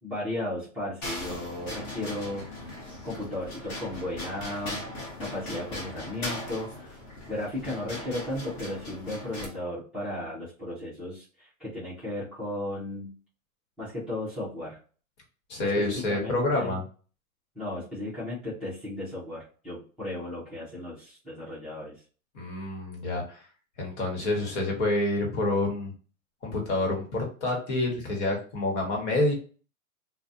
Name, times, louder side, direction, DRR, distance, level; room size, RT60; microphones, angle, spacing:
voice 1, 0.0-4.8 5.2-7.0 7.3-13.1 13.8-14.8 15.6-16.7 17.5-22.0, left 1 dB, ahead, -13 dB, 0.5 m, -35 dB
sound 1, 1.0-9.5, left 1 dB, 25° left, 0.8 m, -39 dB
voice 2, 15.5-16.8 22.3-23.4 23.8-25.9 26.4-29.3, left 2 dB, 50° left, 1 dB, 1.2 m, -28 dB
2.4 x 2.2 x 2.6 m, 0.40 s
hypercardioid pair, 145°, 44 cm